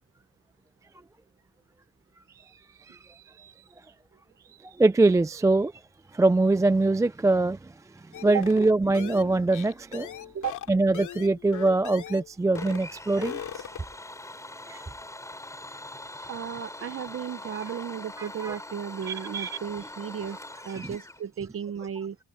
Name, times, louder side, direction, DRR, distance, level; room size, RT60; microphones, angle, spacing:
voice 1, 2.9-3.5 4.6-5.7 6.1-7.7 8.0-10.1 10.7-13.6 14.7-14.8 18.2-18.6 19.1-19.6, right 2 dB, 10° right, 0.4 m, -24 dB
sound 1, 8.1-12.3 12.5-12.9 13.1-14.0, left 10 dB, 90° left, 2.4 m, -39 dB
Domestic sounds home sounds, 12.5-21.2, left 1 dB, 10° left, 5.7 m, -42 dB
voice 2, 16.3-22.2, right 8 dB, 50° right, 0.9 m, -34 dB
open air
cardioid pair, 135°, 30 cm